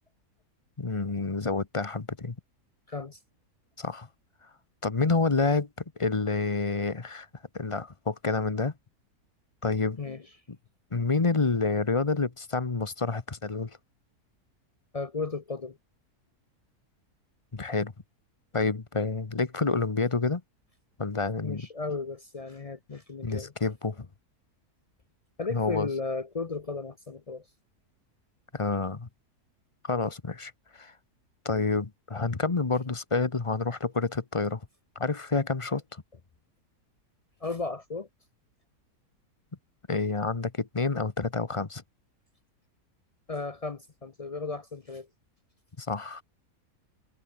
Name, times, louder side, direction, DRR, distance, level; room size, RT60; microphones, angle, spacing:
voice 1, 0.8-2.3 3.8-4.1 4.8-5.7 6.0-7.3 7.5-8.7 9.6-10.0 10.9-13.8 17.5-17.9 18.5-20.4 21.0-21.7 23.2-24.1 25.5-25.9 28.5-29.1 29.8-30.9 31.4-34.7 34.9-36.0 39.9-41.8 45.8-46.2, left 3 dB, 25° left, 0.9 m, -28 dB
voice 2, 2.9-3.2 10.0-10.2 14.9-15.8 21.4-23.5 25.4-27.4 37.4-38.1 43.3-45.1, left 4 dB, 50° left, 0.4 m, -35 dB
omnidirectional pair, 1.7 m